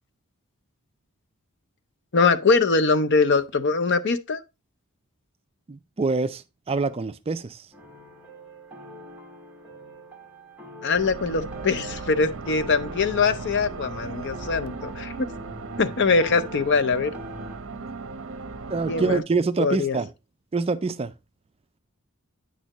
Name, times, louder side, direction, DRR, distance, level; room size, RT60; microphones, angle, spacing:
voice 1, 2.1-4.4 10.8-15.3 15.8-17.1 18.9-19.2 19.6-20.0, left 4 dB, 55° left, 0.6 m, -22 dB
voice 2, 5.7-6.4 6.7-7.6 18.7-20.1 20.5-21.1, right 4 dB, 25° right, 0.4 m, -25 dB
sound 1, 7.7-17.6, equal, 5° right, 1.6 m, -44 dB
sound 2, 10.9-19.2, right 4 dB, 65° right, 0.7 m, -37 dB
9.0 x 6.6 x 2.9 m
head